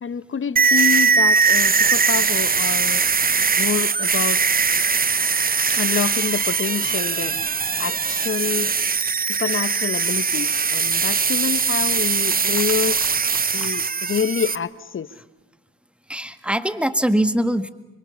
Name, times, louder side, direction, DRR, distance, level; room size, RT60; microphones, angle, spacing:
voice 1, 0.0-3.0 3.6-4.4 5.7-7.5 7.8-8.7 9.2-13.1 13.5-15.1, left 7 dB, 40° left, 15 dB, 1.2 m, -27 dB
sound 1, 0.6-14.6, right 5 dB, 25° right, 1.0 m, -20 dB
voice 2, 13.4-13.8 16.1-17.7, right 1 dB, 5° right, 12 dB, 1.7 m, -23 dB
25.5 x 24.0 x 7.1 m, 1.0 s
hypercardioid pair, 55°, 33 cm